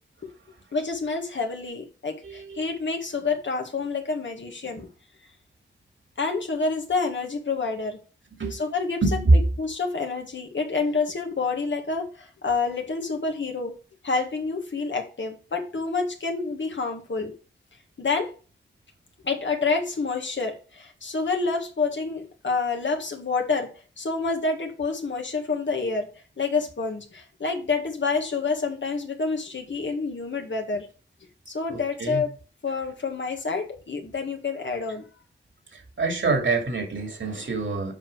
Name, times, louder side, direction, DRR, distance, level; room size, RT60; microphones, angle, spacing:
voice 1, 0.7-4.9 6.2-8.0 8.5-9.0 9.6-13.7 14.0-17.3 18.0-18.3 19.2-23.7 24.0-26.1 26.4-30.9 31.5-32.3 32.6-35.0, left 4 dB, 70° left, 2 dB, 1.7 m, -28 dB
voice 2, 2.2-2.6 8.4-8.6 9.0-9.4 31.7-32.2 35.7-37.9, right 2 dB, 80° right, 3 dB, 2.5 m, -24 dB
7.5 x 4.8 x 4.8 m, 0.36 s
wide cardioid pair, 60°, 20 cm